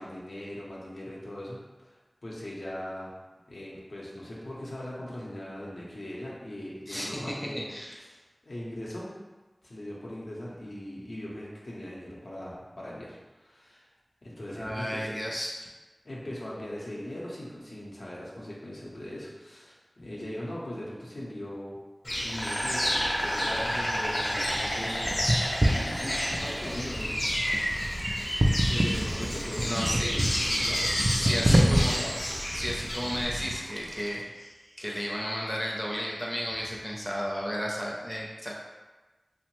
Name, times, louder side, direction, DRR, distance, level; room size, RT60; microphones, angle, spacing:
voice 1, 0.0-2.0 2.2-3.1 3.5-7.7 8.4-9.1 9.6-13.9 14.2-15.1 16.0-21.8 22.2-25.2 25.6-27.7 28.7-32.1, left 1 dB, 80° left, -6 dB, 0.7 m, -39 dB
voice 2, 6.9-8.0 14.5-15.6 29.6-30.2 31.1-31.9 32.5-38.5, equal, 10° left, -3 dB, 0.5 m, -33 dB
Insect, 22.0-33.2, equal, 50° left, 0.8 m, -30 dB
sound 1, 24.1-34.2, right 1 dB, 45° right, 0.3 m, -29 dB
2.8 x 2.1 x 3.0 m, 1.2 s
wide cardioid pair, 50°, 0 cm